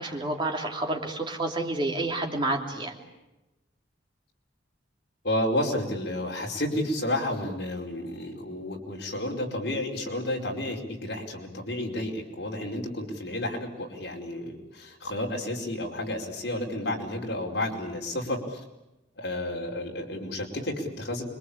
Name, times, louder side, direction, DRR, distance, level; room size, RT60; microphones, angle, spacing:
voice 1, 0.0-2.9, right 2 dB, 25° right, 2 dB, 3.2 m, -29 dB
voice 2, 5.2-18.6 19.2-21.2, left 1 dB, 60° left, 0 dB, 5.0 m, -31 dB
26.5 x 23.5 x 8.8 m, 1.0 s
head